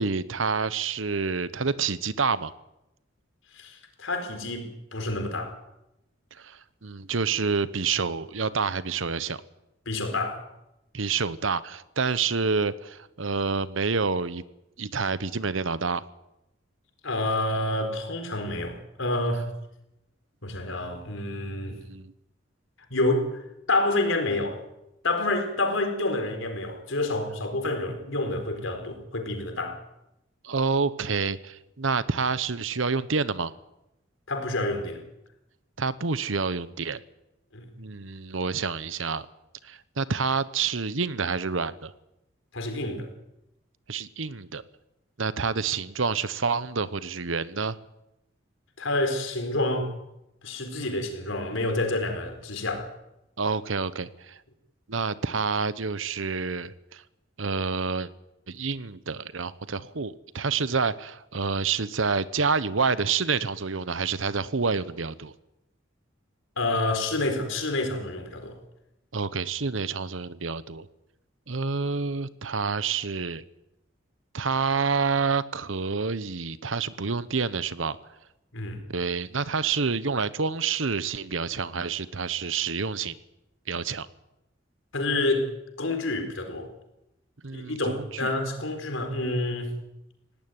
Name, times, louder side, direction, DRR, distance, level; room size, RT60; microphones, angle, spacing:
voice 1, 0.0-2.5 6.4-9.4 10.9-14.4 14.8-16.0 21.7-22.1 30.4-33.5 35.8-37.0 37.8-39.3 39.6-41.9 43.9-44.6 45.2-47.8 53.4-54.4 54.9-57.0 57.4-58.1 58.5-65.3 69.1-70.9 71.5-73.4 74.3-78.0 78.9-83.2 83.7-84.1 87.4-88.3, right 5 dB, 75° right, 16 dB, 1.0 m, -28 dB
voice 2, 3.5-5.5 9.9-10.4 17.0-19.5 20.4-21.8 22.9-23.4 23.7-24.6 25.0-29.8 34.3-35.0 37.5-37.7 42.5-43.1 48.8-49.9 50.4-52.9 66.6-68.6 78.5-78.8 84.9-85.5 85.8-86.7 87.5-89.7, left 2 dB, 75° left, 5 dB, 4.4 m, -28 dB
19.0 x 18.0 x 9.4 m, 0.89 s
head